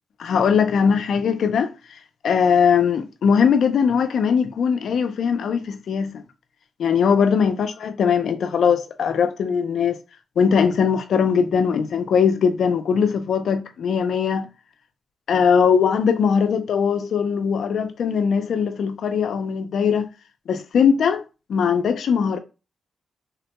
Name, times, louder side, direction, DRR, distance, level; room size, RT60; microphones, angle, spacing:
voice 1, 0.2-1.7 2.2-6.2 6.8-10.0 10.4-14.5 15.3-20.1 20.5-21.2 21.5-22.4, left 6 dB, 70° left, 0.4 m, -20 dB
3.5 x 2.2 x 2.8 m
wide cardioid pair, 130°, 0 cm